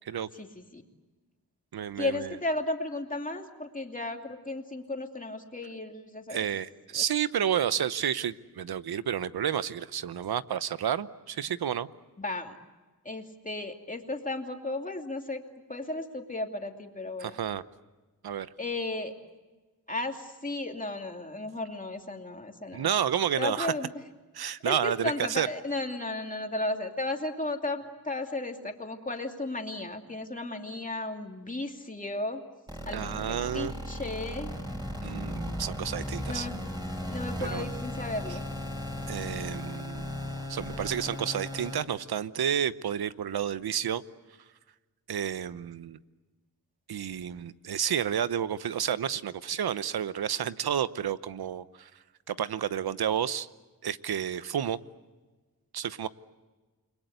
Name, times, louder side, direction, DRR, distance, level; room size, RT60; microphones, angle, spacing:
voice 1, 0.3-0.8 2.0-6.5 6.9-7.0 12.2-12.6 13.0-15.4 15.7-17.4 18.6-19.1 19.9-22.9 23.4-23.9 24.6-32.4 32.8-34.6 36.3-36.5 36.9-38.5, left 2 dB, 20° left, 3 dB, 2.8 m, -34 dB
voice 2, 1.7-2.3 6.3-11.9 17.2-17.6 18.2-18.5 22.7-23.7 24.3-25.5 32.9-33.7 35.0-36.5 37.4-37.6 39.1-40.1 40.5-44.0 45.1-46.0 46.9-51.9 52.3-53.5 53.8-54.8 55.7-56.1, right 9 dB, 80° right, 15 dB, 0.9 m, -30 dB
sound 1, 32.7-41.8, left 1 dB, 10° right, 5.3 m, -36 dB
29.5 x 22.0 x 8.1 m, 1.3 s
wide cardioid pair, 85°, 37 cm